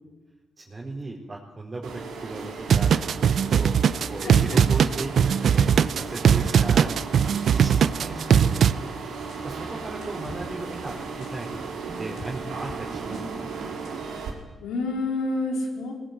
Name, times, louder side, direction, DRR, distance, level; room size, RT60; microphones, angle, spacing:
voice 1, 0.6-3.7 4.1-5.7 5.9-8.2 9.4-11.6 12.0-13.5, right 2 dB, 30° right, -4 dB, 4.3 m, -37 dB
sound 1, 1.8-14.3, right 5 dB, 85° right, 4.2 m, -36 dB
sound 2, 2.7-8.7, right 8 dB, 70° right, 0.7 m, -20 dB
voice 2, 4.2-4.6 14.6-15.9, left 2 dB, 90° left, 2 dB, 4.3 m, -28 dB
sound 3, 6.4-6.6 7.1-7.5 8.3-8.5 9.3-9.4 10.0-10.4 11.2-11.3 12.2-12.3 12.6-12.8 13.1-13.3 13.8-13.9, left 3 dB, 65° left, 5.6 m, -43 dB
19.5 x 19.0 x 9.5 m, 1.3 s
supercardioid pair, 60°, 0 cm